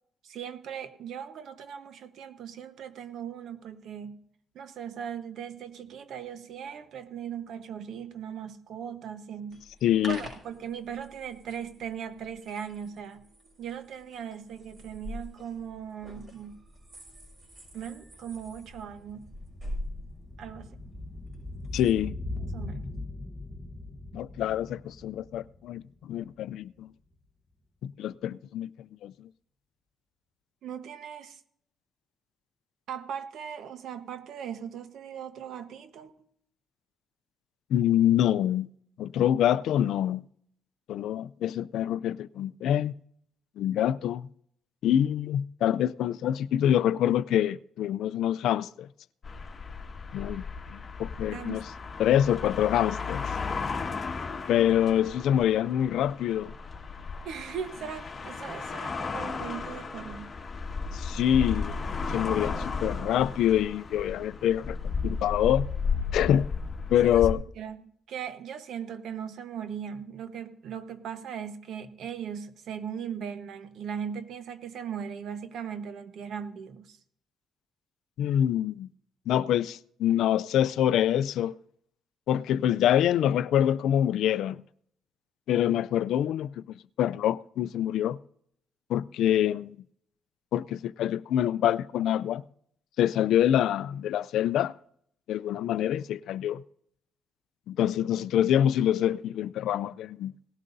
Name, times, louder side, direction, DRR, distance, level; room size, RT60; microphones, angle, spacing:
voice 1, 0.2-4.2 4.5-9.6 10.1-13.3 13.6-16.6 17.7-19.3 20.4-20.8 22.5-22.9 30.6-31.4 32.9-36.1 51.3-51.7 57.2-60.4 67.0-67.3 67.6-77.0, right 8 dB, 75° right, 1.1 m, -39 dB
sound 1, 9.5-21.9, equal, 40° right, 6.3 m, -45 dB
voice 2, 9.8-10.2 21.7-22.1 24.1-26.9 27.8-28.7 29.0-29.1 37.7-38.7 39.0-40.2 40.9-42.9 43.6-44.3 44.8-48.9 50.1-50.4 50.7-51.6 52.0-53.2 54.5-56.5 60.9-61.8 62.1-64.8 65.0-65.7 66.1-66.5 66.9-67.4 78.2-78.9 79.3-81.6 82.3-84.6 85.5-86.6 87.0-88.2 88.9-89.8 90.5-92.4 93.0-94.7 95.3-96.6 97.7-100.3, left 11 dB, 80° left, 0.4 m, -25 dB
sound 2, 15.8-15.9 16.2-26.5 26.8-26.9, left 2 dB, 15° left, 1.1 m, -41 dB
sound 3, 49.2-67.3, left 4 dB, 35° left, 1.7 m, -34 dB
18.5 x 12.5 x 2.7 m
cardioid pair, 90°, 0 cm